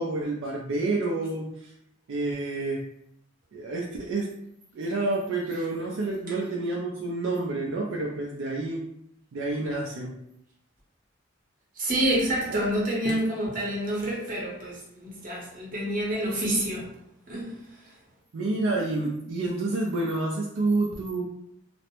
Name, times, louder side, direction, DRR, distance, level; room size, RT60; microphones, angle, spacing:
voice 1, 0.0-1.7 2.1-2.8 3.5-4.3 4.7-8.8 9.3-10.1 12.5-12.6 18.3-21.2, right 2 dB, 70° right, -3 dB, 0.4 m, -29 dB
voice 2, 11.7-17.0 17.3-18.0, right 1 dB, 45° right, -4 dB, 0.8 m, -28 dB
2.5 x 2.1 x 2.9 m, 0.78 s
head